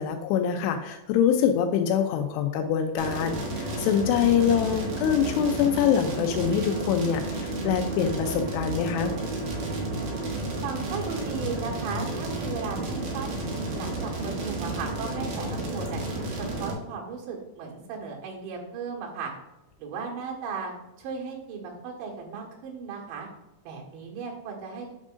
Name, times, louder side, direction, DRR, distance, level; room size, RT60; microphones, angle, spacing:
voice 1, 0.0-9.1, left 8 dB, 85° left, 5 dB, 2.3 m, -25 dB
sound 1, 3.0-16.7, right 2 dB, 55° right, 2.9 m, -32 dB
voice 2, 4.3-4.9 10.6-13.4 13.8-16.0 16.4-19.3 19.8-20.7 21.0-23.3 23.7-24.9, right 5 dB, 75° right, -1 dB, 3.9 m, -36 dB
9.1 x 7.4 x 2.6 m, 0.99 s
omnidirectional pair, 5.4 m